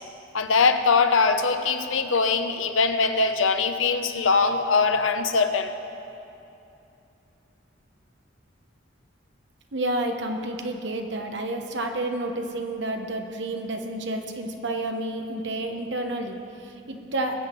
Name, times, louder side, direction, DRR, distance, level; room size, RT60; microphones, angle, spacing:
voice 1, 0.3-5.7, left 4 dB, 85° left, 8 dB, 0.8 m, -22 dB
voice 2, 9.7-17.4, right 1 dB, 65° right, 4 dB, 1.1 m, -30 dB
20.5 x 7.9 x 4.6 m, 2.8 s
head